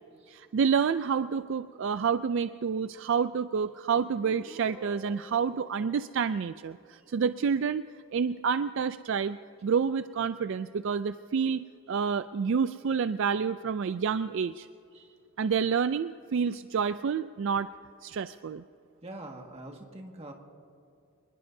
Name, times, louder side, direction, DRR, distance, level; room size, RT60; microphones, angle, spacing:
voice 1, 0.3-7.8 8.1-14.7 15.4-17.7 18.0-18.6, right 6 dB, 55° right, 12 dB, 0.3 m, -29 dB
Guitar, 3.9-7.4, equal, 5° left, 1.0 m, -52 dB
voice 2, 14.9-15.5 19.0-20.3, right 1 dB, 25° right, 1 dB, 1.8 m, -45 dB
26.0 x 20.5 x 2.7 m, 2.6 s
head